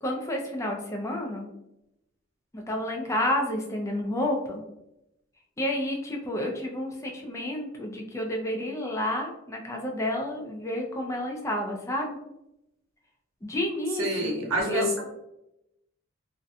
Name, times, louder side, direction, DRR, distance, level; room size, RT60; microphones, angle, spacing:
voice 1, 0.0-1.5 2.5-4.6 5.6-12.2 13.4-14.9, left 1 dB, 15° left, 1 dB, 0.4 m, -30 dB
voice 2, 14.0-15.0, equal, 90° right, 0 dB, 0.7 m, -27 dB
2.6 x 2.1 x 2.5 m, 0.86 s
head